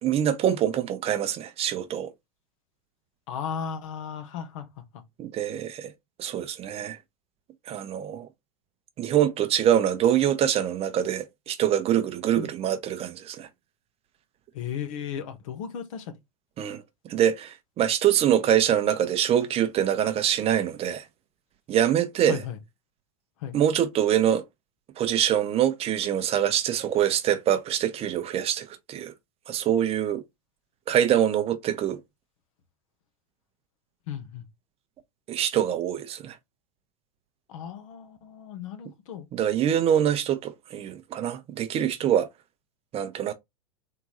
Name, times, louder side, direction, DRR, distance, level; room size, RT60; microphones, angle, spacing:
voice 1, 0.0-2.1 5.2-5.9 6.2-7.0 7.7-8.3 9.0-13.5 16.6-16.8 17.1-21.0 21.7-22.4 23.5-24.4 25.0-29.1 29.5-30.2 30.9-32.0 35.3-36.3 39.3-42.3 42.9-43.3, right 10 dB, 35° right, 0.7 m, -24 dB
voice 2, 3.3-4.7 4.9-5.0 12.4-12.5 14.5-16.1 22.3-22.6 23.4-23.5 34.1-34.4 37.5-39.3, left 8 dB, 65° left, 1.3 m, -35 dB
3.8 x 3.6 x 3.0 m
hypercardioid pair, 95°, 18 cm